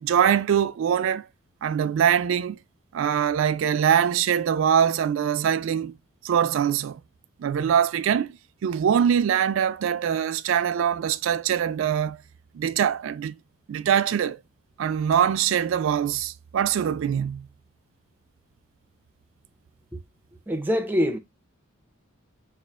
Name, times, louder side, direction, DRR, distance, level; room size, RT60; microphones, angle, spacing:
voice 1, 0.0-1.3 1.6-2.6 2.9-5.9 6.2-7.0 7.4-8.4 8.6-12.2 12.5-13.3 13.7-14.4 14.8-17.5, right 8 dB, 75° right, 0.3 m, -23 dB
voice 2, 20.5-21.2, equal, 10° right, 0.5 m, -24 dB
5.1 x 2.4 x 2.3 m
head